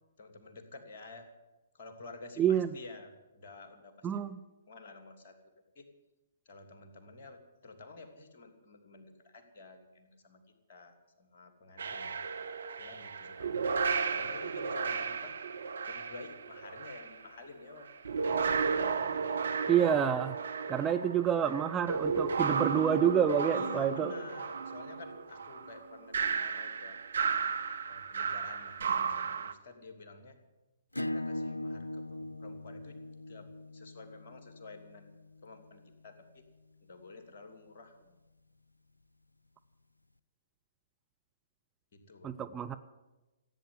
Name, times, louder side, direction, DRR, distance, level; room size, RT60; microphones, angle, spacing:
voice 1, 0.2-1.3 1.7-4.2 4.7-5.8 6.4-10.4 10.7-12.2 12.8-13.6 14.1-15.3 15.9-17.9 18.2-18.6 20.7-20.9 23.5-27.0 27.8-30.4 31.1-36.4 36.8-38.2 41.9-42.4, left 3 dB, 45° left, 6 dB, 2.7 m, -51 dB
voice 2, 2.4-2.7 4.0-4.4 19.7-20.4 20.7-24.1 42.2-42.7, right 9 dB, 15° right, 8 dB, 0.6 m, -28 dB
sound 1, 11.8-17.1 17.8-29.5, right 5 dB, 60° right, 0.9 m, -34 dB
Acoustic guitar / Strum, 30.9-36.2, left 1 dB, 85° left, 0.4 m, -40 dB
15.5 x 9.1 x 9.3 m, 1.1 s
figure-of-eight pair, 120°, 0 cm